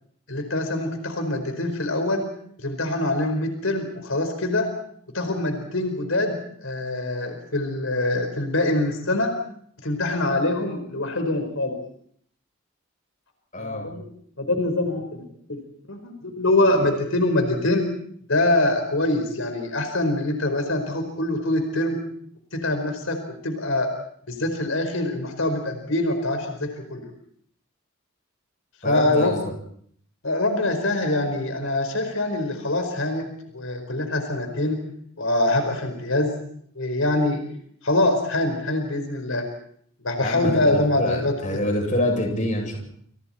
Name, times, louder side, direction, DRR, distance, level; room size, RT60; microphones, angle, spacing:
voice 1, 0.3-2.3 2.6-4.7 5.1-9.3 9.8-11.7 13.6-14.0 14.4-15.2 15.5-15.6 15.9-17.8 18.3-22.0 22.5-23.2 23.4-23.9 24.3-27.1 28.8-29.3 30.2-33.3 33.5-34.8 35.2-36.3 36.7-37.4 37.8-39.4 40.0-41.3, left 2 dB, 85° left, 5 dB, 4.9 m, -24 dB
voice 2, 13.5-13.9 28.8-29.4 40.2-42.8, left 1 dB, 35° left, 2 dB, 7.8 m, -26 dB
29.5 x 29.0 x 4.5 m, 0.65 s
head